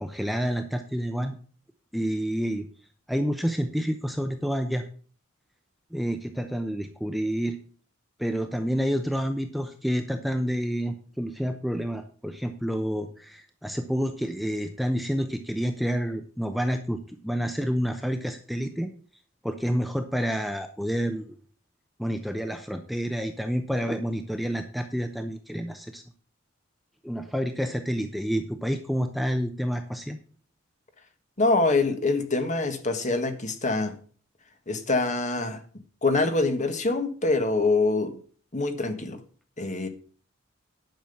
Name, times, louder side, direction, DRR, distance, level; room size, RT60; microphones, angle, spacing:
voice 1, 0.0-1.4 1.9-2.7 3.1-4.8 5.9-7.6 8.2-18.9 19.4-21.4 22.0-26.0 27.0-30.2, equal, ahead, 6 dB, 0.7 m, -29 dB
voice 2, 31.4-34.0 34.7-35.6 36.0-38.1 38.5-39.2 39.6-39.9, left 3 dB, 35° left, 7 dB, 1.6 m, -25 dB
10.5 x 6.1 x 7.0 m, 0.42 s
head